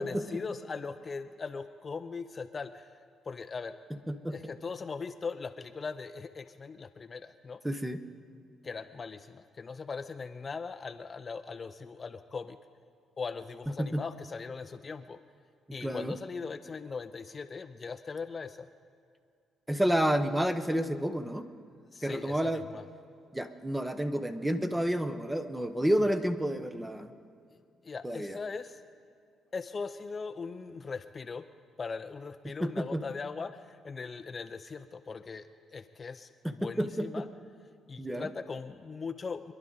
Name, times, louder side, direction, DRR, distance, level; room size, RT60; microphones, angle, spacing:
voice 1, 0.0-2.9 3.3-3.8 4.3-7.6 8.6-12.6 13.2-15.2 15.7-18.7 21.9-22.8 27.8-28.8 29.5-31.5 31.8-37.2 37.9-39.5, left 4 dB, 35° left, 9 dB, 0.5 m, -39 dB
voice 2, 7.6-8.0 13.8-14.0 15.8-16.2 19.7-21.5 22.0-22.6 23.3-27.1 28.0-28.4 32.4-33.0 36.4-37.3 38.0-38.3, equal, 10° right, 9 dB, 0.9 m, -30 dB
25.0 x 11.0 x 3.9 m, 2.2 s
cardioid pair, 90°, 0 cm